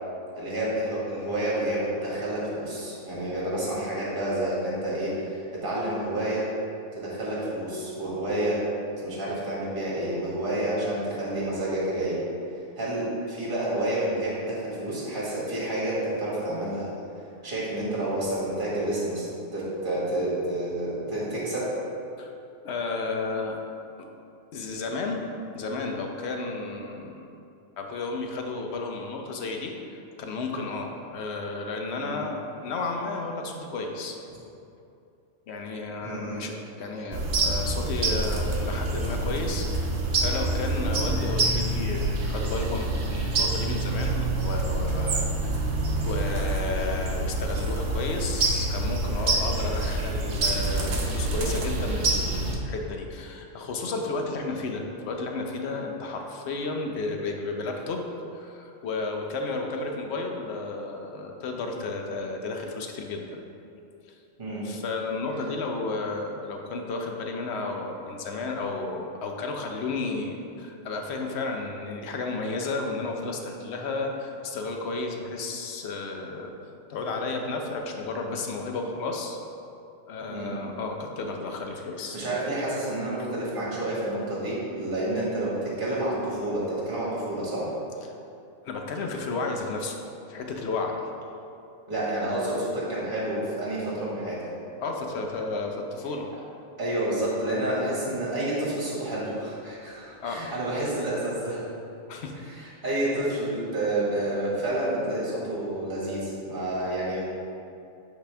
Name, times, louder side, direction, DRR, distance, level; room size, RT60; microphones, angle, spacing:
voice 1, 0.4-6.5 6.9-8.6 9.0-12.2 12.8-16.9 17.4-19.3 19.5-21.7 31.9-32.2 36.0-36.4 64.4-64.7 80.3-80.6 82.1-87.7 91.9-94.5 96.8-101.7 102.5-107.3, right 1 dB, 45° right, -6 dB, 1.8 m, -29 dB
voice 2, 22.6-23.6 24.0-24.1 24.5-27.3 27.8-34.2 35.5-45.6 46.0-58.1 58.3-63.4 64.1-64.2 64.6-79.4 80.1-82.2 88.0-88.1 88.6-89.9 90.3-91.0 94.8-96.3 100.2-100.4 102.1-102.3, left 3 dB, 65° left, 2 dB, 0.9 m, -32 dB
sound 1, 37.1-52.6, right 2 dB, 65° right, 1.0 m, -27 dB
8.4 x 4.1 x 3.4 m, 2.6 s
omnidirectional pair, 1.3 m